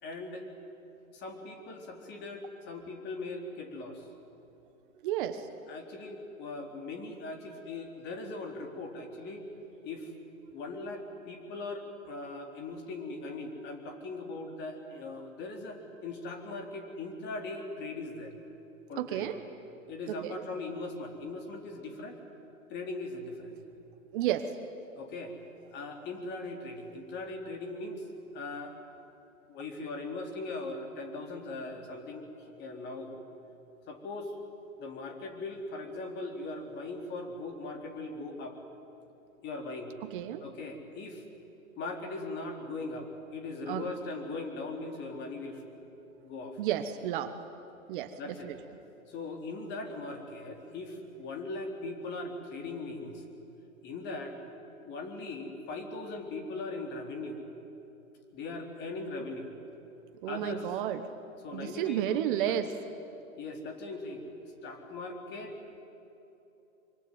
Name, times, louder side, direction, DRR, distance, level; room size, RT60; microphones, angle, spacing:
voice 1, 0.0-0.5 1.1-4.1 5.7-9.5 9.8-10.1 10.5-18.3 18.9-19.3 19.9-22.2 22.7-23.6 25.0-25.4 25.7-28.0 28.3-28.8 29.5-32.3 32.6-33.2 33.9-34.4 34.8-38.6 39.4-39.9 40.4-41.2 41.8-45.8 46.2-46.6 48.1-48.5 49.1-53.2 53.8-54.4 54.8-57.4 58.3-59.5 60.3-60.7 61.4-62.6 63.4-64.3 64.6-65.6, left 2 dB, 25° left, 4 dB, 3.8 m, -39 dB
voice 2, 5.0-5.5 19.0-19.4 20.2-20.4 24.1-24.5 40.1-40.4 43.7-43.9 46.6-47.3 47.9-48.6 60.2-61.0 61.5-62.7, right 11 dB, 40° right, 9 dB, 1.3 m, -32 dB
25.0 x 24.5 x 9.3 m, 2.9 s
hypercardioid pair, 130°, 42 cm